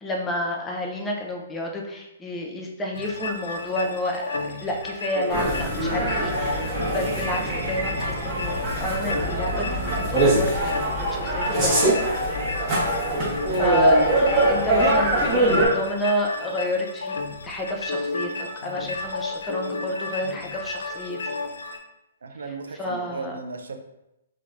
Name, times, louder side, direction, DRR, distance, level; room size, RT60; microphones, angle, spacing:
voice 1, 0.0-11.9 13.2-17.2 17.4-21.2 22.5-23.4, left 1 dB, 10° left, -1 dB, 0.4 m, -30 dB
sound 1, 2.9-21.8, left 3 dB, 85° left, 0.3 m, -32 dB
sound 2, 5.3-15.7, right 1 dB, 20° right, 0.8 m, -23 dB
voice 2, 22.2-23.8, right 4 dB, 85° right, 5 dB, 0.3 m, -35 dB
3.1 x 2.0 x 2.4 m, 0.89 s
hypercardioid pair, 150°, 0 cm